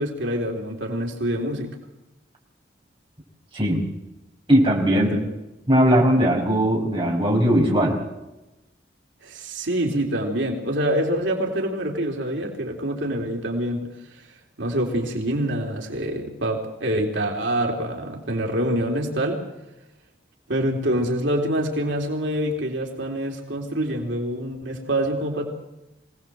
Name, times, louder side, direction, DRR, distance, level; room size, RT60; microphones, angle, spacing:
voice 1, 0.0-1.7 4.9-5.3 6.2-6.3 9.2-14.3 14.6-19.4 20.5-25.4, right 1 dB, 85° right, 1 dB, 3.8 m, -26 dB
voice 2, 3.5-3.8 4.5-5.2 5.7-8.0, equal, 25° right, -1 dB, 5.0 m, -19 dB
25.0 x 18.0 x 7.7 m, 0.97 s
head